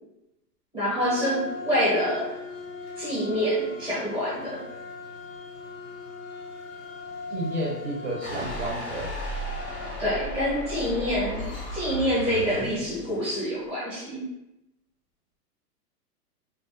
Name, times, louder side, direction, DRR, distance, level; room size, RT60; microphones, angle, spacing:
voice 1, 0.7-2.3 3.0-4.6 10.0-11.4 11.7-14.2, equal, 5° left, -8 dB, 0.6 m, -26 dB
sound 1, 1.0-12.0, left 4 dB, 55° left, 0.7 m, -40 dB
voice 2, 7.3-9.1, right 1 dB, 45° right, -3 dB, 0.4 m, -31 dB
sound 2, 8.2-13.3, equal, 80° left, 1.0 m, -35 dB
2.3 x 2.2 x 2.4 m, 0.92 s
hypercardioid pair, 145°, 48 cm